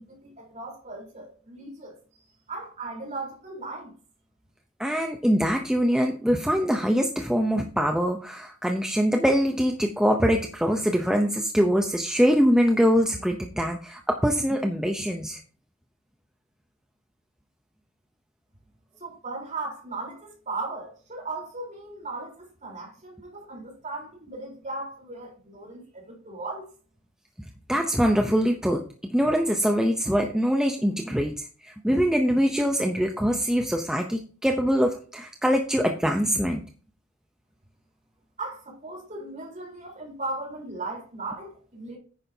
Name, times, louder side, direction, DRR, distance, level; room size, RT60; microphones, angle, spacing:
voice 1, 0.0-2.0 2.5-3.9 19.0-26.7 38.4-42.0, right 3 dB, 35° right, 4.0 m, -37 dB
voice 2, 4.8-15.4 27.7-28.8 29.1-36.6, equal, 5° right, 0.7 m, -23 dB
10.0 x 9.3 x 2.8 m
head